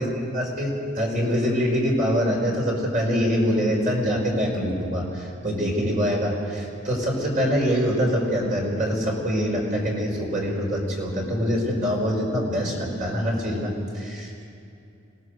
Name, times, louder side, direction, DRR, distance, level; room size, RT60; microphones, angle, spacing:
voice 1, 0.0-14.3, equal, 40° right, -2 dB, 5.0 m, -24 dB
27.5 x 18.0 x 6.5 m, 2.6 s
head